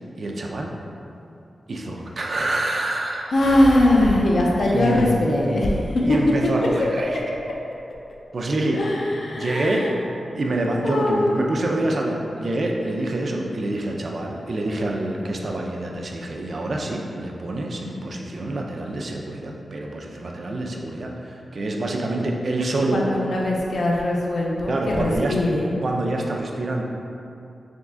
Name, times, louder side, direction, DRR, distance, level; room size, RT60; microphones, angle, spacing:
voice 1, 0.2-0.8 1.7-3.3 4.7-5.1 6.0-7.2 8.3-8.8 9.3-9.9 10.3-23.0 24.7-25.4 25.8-26.8, right 2 dB, 50° right, 0 dB, 0.4 m, -26 dB
voice 2, 3.3-6.2 8.8-9.9 10.8-11.5 15.2-15.3 22.9-25.7, left 1 dB, 65° left, -3 dB, 0.5 m, -21 dB
3.6 x 3.1 x 3.6 m, 2.7 s
wide cardioid pair, 110°, 0 cm